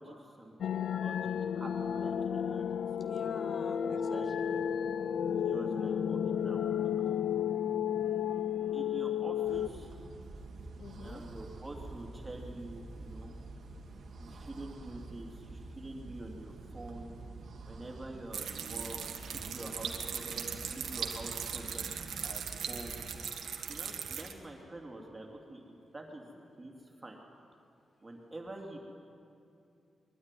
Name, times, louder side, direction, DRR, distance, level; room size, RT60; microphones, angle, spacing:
voice 1, 0.0-2.8 3.8-4.3 5.4-6.9 8.7-9.9 11.0-13.3 14.2-17.1 17.6-21.9 22.2-23.0 23.7-26.3 26.6-27.2 28.0-28.8, right 1 dB, 15° right, 0 dB, 2.9 m, -46 dB
sound 1, 0.6-9.7, left 8 dB, 75° left, 0.4 m, -32 dB
voice 2, 3.0-4.6 10.8-11.2, left 4 dB, 45° left, 9 dB, 0.9 m, -47 dB
sound 2, 9.4-23.2, right 3 dB, 70° right, 1.8 m, -48 dB
sound 3, 18.3-24.3, right 7 dB, 90° right, 1.6 m, -39 dB
21.5 x 12.5 x 9.9 m, 2.6 s
wide cardioid pair, 120°, 0 cm